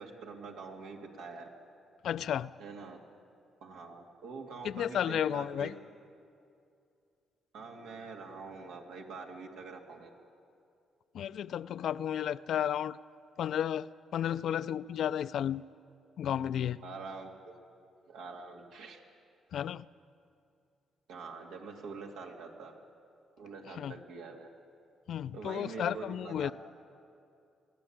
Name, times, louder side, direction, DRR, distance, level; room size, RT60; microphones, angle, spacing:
voice 1, 0.0-1.5 2.6-3.0 3.6-5.7 7.5-10.1 16.8-17.6 18.1-19.0 21.1-22.7 23.4-24.5 25.3-26.5, right 4 dB, 90° right, 1 dB, 2.6 m, -45 dB
voice 2, 2.0-2.5 4.6-5.7 11.1-13.0 13.4-15.6 16.2-16.8 19.5-19.9 23.8-23.9 25.1-26.5, left 10 dB, 70° left, 16 dB, 0.5 m, -33 dB
23.0 x 16.5 x 8.8 m, 2.5 s
cardioid pair, 90°, 0 cm